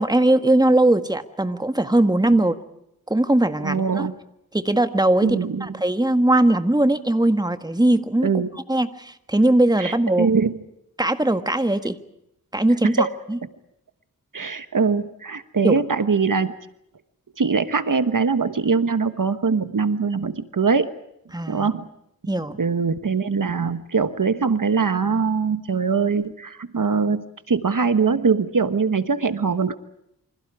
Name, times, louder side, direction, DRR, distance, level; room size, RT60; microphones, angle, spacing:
voice 1, 0.0-2.6 3.1-4.1 4.5-8.4 8.7-10.3 11.0-12.0 12.5-13.4 15.6-15.8 21.3-21.7 22.3-22.6, right 1 dB, 10° right, 9 dB, 1.7 m, -20 dB
voice 2, 3.6-4.1 5.2-5.7 8.2-8.5 9.8-10.6 12.8-13.1 14.3-16.5 17.4-20.9 21.5-21.9 22.6-29.8, right 5 dB, 65° right, 11 dB, 1.3 m, -22 dB
28.5 x 26.0 x 4.8 m, 0.80 s
wide cardioid pair, 80°, 35 cm